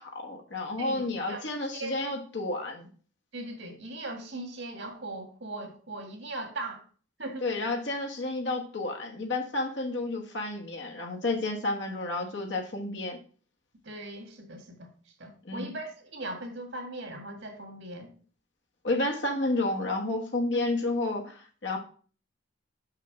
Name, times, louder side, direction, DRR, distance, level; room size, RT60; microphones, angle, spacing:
voice 1, 0.0-2.9 7.4-13.2 15.4-15.7 18.8-21.8, left 2 dB, 65° left, 1 dB, 1.3 m, -31 dB
voice 2, 0.8-1.9 3.3-6.8 7.2-7.5 13.8-14.9 15.2-18.1 20.5-20.6, right 2 dB, 70° right, 4 dB, 1.9 m, -39 dB
6.2 x 5.7 x 4.7 m, 0.42 s
head